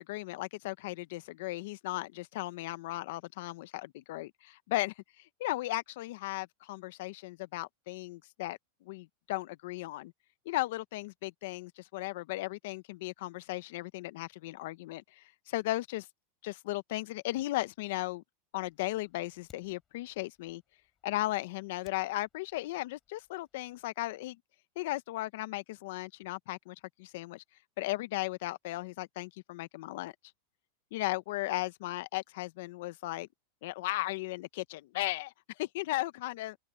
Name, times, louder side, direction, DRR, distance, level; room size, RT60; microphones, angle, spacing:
voice 1, 0.0-10.1 10.4-16.1 16.4-18.2 18.5-20.6 21.0-24.4 24.8-27.4 27.8-30.1 30.9-33.3 33.6-36.6, left 18 dB, 65° left, 1.0 m, -36 dB
Fire, 18.5-23.9, left 8 dB, 25° left, 7.1 m, -68 dB
open air
supercardioid pair, 130°, 0 cm